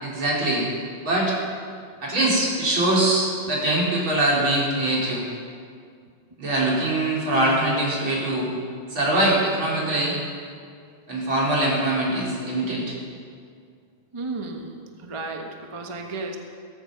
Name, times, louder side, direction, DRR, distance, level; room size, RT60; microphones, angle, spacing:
voice 1, 0.0-0.6 1.0-1.4 2.0-5.2 6.4-8.5 8.9-10.1 11.1-12.9, right 1 dB, 75° right, -5 dB, 4.9 m, -22 dB
voice 2, 14.1-16.4, right 3 dB, 20° right, 3 dB, 1.0 m, -33 dB
18.5 x 14.5 x 5.4 m, 2.2 s
omnidirectional pair, 2.2 m